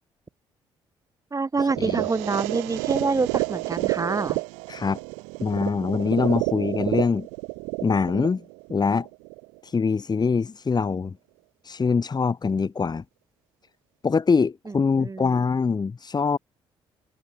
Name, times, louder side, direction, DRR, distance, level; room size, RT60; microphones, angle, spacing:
voice 1, 1.3-4.4 14.7-15.3, right 4 dB, 30° right, 4.6 m, -27 dB
sound 1, 1.6-9.6, right 35 dB, 90° right, 1.9 m, -30 dB
voice 2, 4.7-5.0 5.4-7.3 7.8-8.4 8.7-9.1 9.6-11.2 11.6-13.0 14.0-16.4, left 5 dB, 35° left, 2.4 m, -23 dB
supercardioid pair, 55°, 11 cm